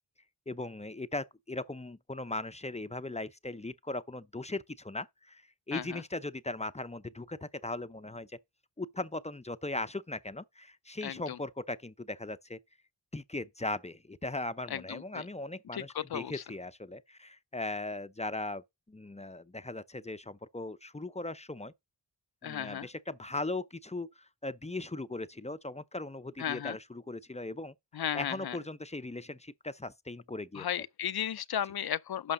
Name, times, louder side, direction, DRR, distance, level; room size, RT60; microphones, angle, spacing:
voice 1, 0.5-5.4 5.7-8.3 8.8-12.6 13.1-18.6 18.9-21.7 22.4-24.1 24.4-27.7 28.1-30.7, left 2 dB, 15° left, 0.6 m, -38 dB
voice 2, 5.7-6.0 11.0-11.4 14.7-15.3 15.7-16.4 22.4-22.9 26.4-26.8 27.9-28.6 30.5-32.3, left 9 dB, 60° left, 0.6 m, -35 dB
11.5 x 6.0 x 3.8 m
wide cardioid pair, 75°, 43 cm